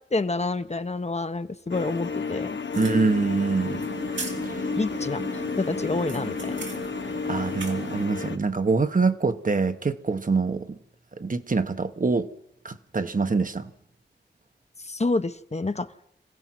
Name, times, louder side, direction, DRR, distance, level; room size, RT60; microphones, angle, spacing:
voice 1, 0.1-2.6 4.8-6.6 14.8-15.9, left 3 dB, 35° left, 1.0 m, -28 dB
sound 1, 1.7-8.4, left 5 dB, 85° left, 1.0 m, -32 dB
sound 2, 2.7-8.1, right 4 dB, 90° right, 2.9 m, -37 dB
voice 2, 2.8-3.9 4.4-4.6 7.3-10.8 11.2-12.3 12.6-13.7, right 4 dB, 45° right, 1.3 m, -25 dB
26.5 x 16.0 x 6.1 m
cardioid pair, 50°, 19 cm